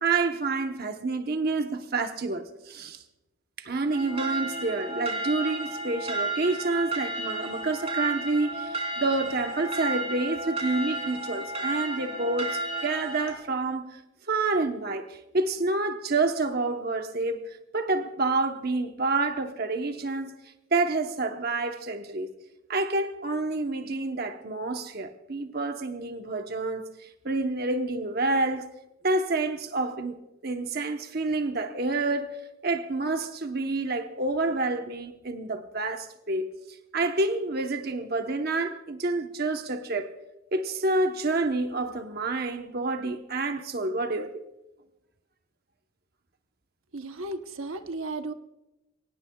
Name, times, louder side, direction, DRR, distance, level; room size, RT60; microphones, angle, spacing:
voice 1, 0.0-3.0 3.6-14.0 14.3-20.4 20.7-22.3 22.7-28.7 29.0-36.5 36.9-40.1 40.5-44.4, right 3 dB, 45° right, 0.9 m, -28 dB
sound 1, 3.9-13.3, right 2 dB, 30° right, 2.8 m, -32 dB
voice 2, 46.9-48.3, right 2 dB, 75° right, 1.0 m, -34 dB
23.5 x 18.5 x 2.3 m
head